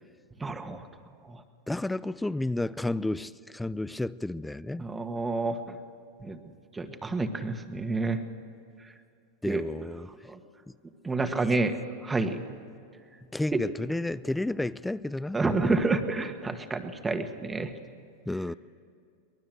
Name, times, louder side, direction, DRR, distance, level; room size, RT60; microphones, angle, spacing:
voice 1, 0.4-0.9 1.3-1.4 4.8-5.8 6.2-6.4 6.7-8.2 9.4-9.6 10.3-10.4 11.0-11.8 12.0-12.4 13.5-13.6 15.3-17.7, right 3 dB, 15° right, 1.7 m, -29 dB
voice 2, 1.7-4.8 9.4-10.1 11.3-11.6 13.3-15.4 18.3-18.5, left 2 dB, 5° left, 0.5 m, -31 dB
23.5 x 19.5 x 7.8 m
hypercardioid pair, 105°, 0 cm